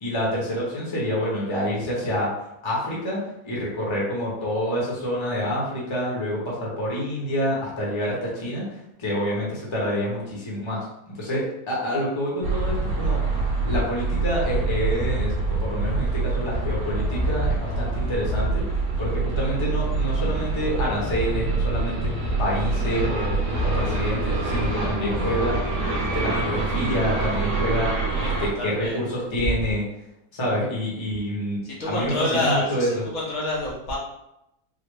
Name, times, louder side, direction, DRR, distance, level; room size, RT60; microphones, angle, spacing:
voice 1, 0.0-2.3 2.6-10.8 11.1-18.6 19.0-22.1 22.4-23.3 23.6-25.6 26.0-27.9 28.2-29.8 30.3-33.0, equal, 20° left, -5 dB, 0.9 m, -27 dB
sound 1, 12.4-28.5, right 3 dB, 60° right, 1.2 m, -25 dB
voice 2, 28.0-29.0 29.5-29.6 31.6-34.0, left 1 dB, 70° left, -6 dB, 1.4 m, -28 dB
4.0 x 2.1 x 3.3 m, 0.85 s
omnidirectional pair, 1.6 m